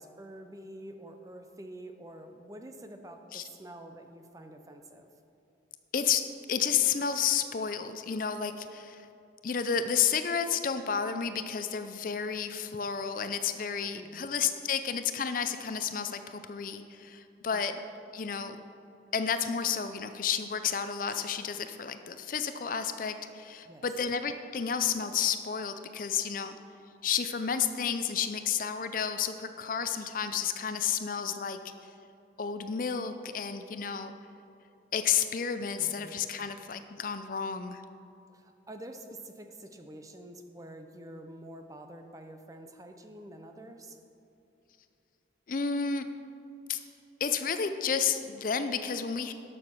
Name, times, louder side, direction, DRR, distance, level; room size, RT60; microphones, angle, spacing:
voice 1, 0.0-5.1 14.0-14.3 17.5-17.8 23.7-23.8 35.8-36.1 38.3-44.0, right 1 dB, 20° right, 5 dB, 0.6 m, -47 dB
voice 2, 5.9-9.1 9.4-17.7 18.1-18.6 19.1-26.6 27.0-31.6 32.4-34.1 34.9-37.8 45.5-46.0 46.7-46.8 47.2-49.3, left 7 dB, 45° left, 9 dB, 0.4 m, -31 dB
sound 1, 21.1-22.4, left 2 dB, 25° left, 1.6 m, -57 dB
11.0 x 6.7 x 6.0 m, 2.7 s
head